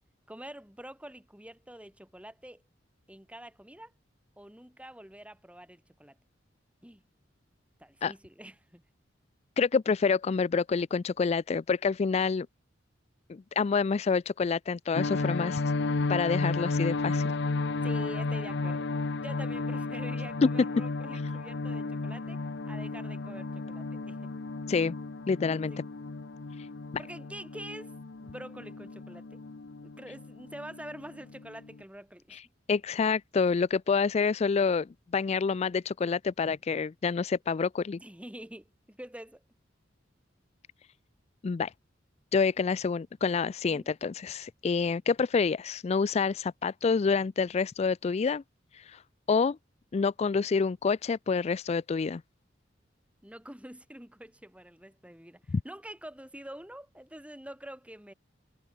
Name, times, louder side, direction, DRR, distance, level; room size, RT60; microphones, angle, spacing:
voice 1, 0.3-2.6 3.1-3.9 4.4-6.2 6.8-7.0 7.8-8.8 17.8-18.9 19.2-24.3 25.7-25.9 27.0-28.0 28.2-29.4 29.8-32.4 38.0-39.4 43.7-43.9 53.2-58.1, right 1 dB, 5° right, 3.2 m, -46 dB
voice 2, 9.6-12.5 13.3-15.6 16.1-17.3 24.7-24.9 25.3-25.7 32.3-32.4 32.7-38.0 41.4-41.7 42.3-48.4 48.7-49.0 49.3-49.6 49.9-52.2 55.5-55.6, left 5 dB, 35° left, 0.3 m, -27 dB
sound 1, 14.9-31.8, left 3 dB, 65° left, 0.8 m, -33 dB
head